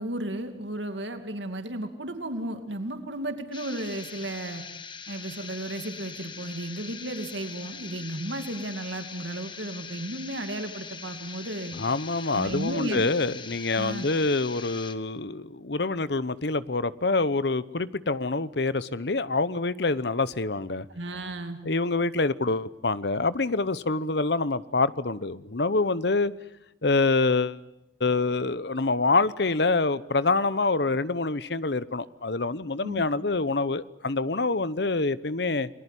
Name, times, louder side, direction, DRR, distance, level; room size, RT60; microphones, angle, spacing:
voice 1, 0.0-4.6 5.1-11.7 12.3-13.0 13.7-14.1 20.9-21.6 32.8-33.1, right 1 dB, 75° right, 2.5 m, -34 dB
sound 1, 3.5-14.9, left 6 dB, 25° left, 1.3 m, -42 dB
voice 2, 11.7-20.9 21.6-26.3 26.8-27.6 28.0-35.7, left 3 dB, 60° left, 0.9 m, -26 dB
28.5 x 20.0 x 10.0 m
head